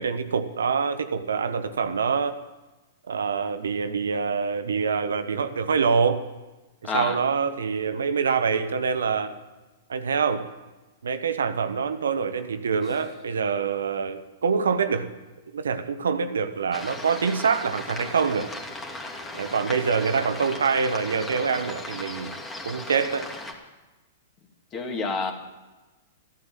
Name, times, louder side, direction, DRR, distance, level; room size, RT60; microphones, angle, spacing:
voice 1, 0.0-2.4 3.1-6.2 6.8-9.3 9.9-10.5 11.0-15.1 15.5-18.5 19.3-22.4 22.6-23.3, right 5 dB, 80° right, 10 dB, 1.1 m, -25 dB
voice 2, 6.9-7.2 20.2-20.3 24.7-25.3, left 4 dB, 30° left, 4 dB, 2.5 m, -28 dB
sound 1, 16.7-23.5, left 2 dB, 15° left, 2.3 m, -37 dB
14.5 x 11.5 x 7.5 m, 1.2 s
hypercardioid pair, 115°, 0 cm